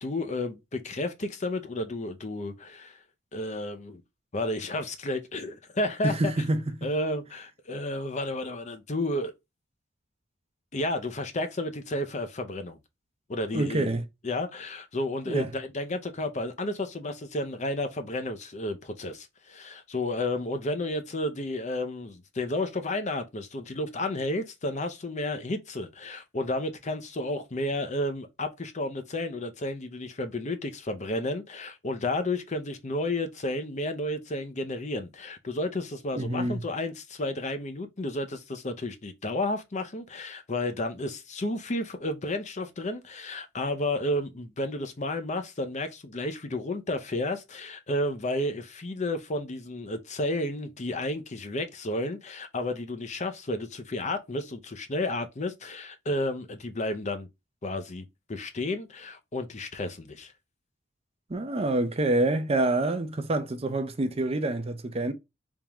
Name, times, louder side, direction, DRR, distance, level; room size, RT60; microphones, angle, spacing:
voice 1, 0.0-3.0 3.3-4.0 4.3-6.3 6.8-9.3 10.7-12.8 13.3-13.9 14.2-57.3 57.6-58.0 58.3-60.3, left 1 dB, 40° left, 0.6 m, -32 dB
voice 2, 6.0-6.9 13.5-14.0 15.3-15.5 36.2-36.6 61.3-65.1, right 2 dB, 30° right, 0.6 m, -27 dB
3.6 x 3.5 x 3.0 m
head